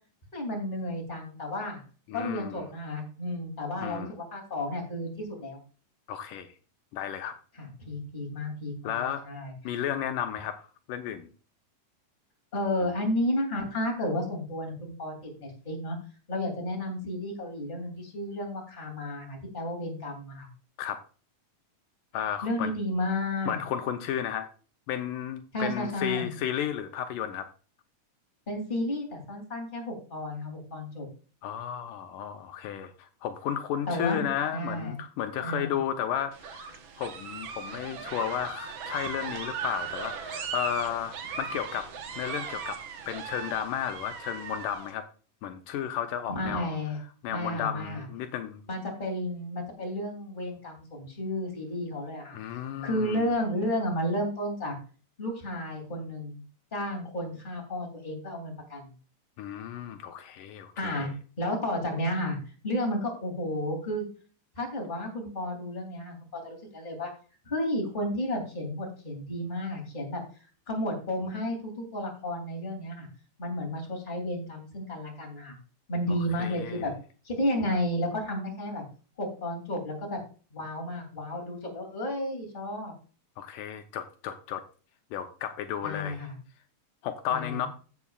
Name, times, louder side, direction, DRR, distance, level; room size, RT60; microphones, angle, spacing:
voice 1, 0.3-1.8 2.1-5.6 7.6-9.5 12.5-16.0 16.3-20.5 22.4-23.6 25.5-26.3 28.5-31.1 33.9-34.3 34.5-35.0 35.4-35.7 46.3-47.0 47.3-48.1 48.7-52.4 52.8-54.7 55.2-56.4 56.7-58.9 60.8-61.1 61.4-62.4 62.6-64.0 64.6-67.1 67.5-70.2 70.7-73.1 73.4-75.6 75.9-76.9 77.2-78.8 79.2-80.2 80.5-82.9 85.8-86.4 87.3-87.7, left 1 dB, 15° left, 1 dB, 2.6 m, -32 dB
voice 2, 2.1-2.6 3.8-4.1 6.1-6.5 6.9-7.4 8.8-9.2 9.6-11.3 20.8-21.0 22.1-22.7 23.5-24.5 24.9-27.5 31.4-41.9 42.2-42.8 43.1-45.0 45.4-46.8 47.2-48.6 52.3-53.2 59.4-61.1 76.1-76.9 83.4-84.6 85.1-86.2 87.0-87.7, left 9 dB, 80° left, 7 dB, 2.3 m, -33 dB
sound 1, 36.3-44.9, right 7 dB, 70° right, 1.2 m, -38 dB
15.0 x 7.1 x 2.4 m, 0.38 s
omnidirectional pair, 3.9 m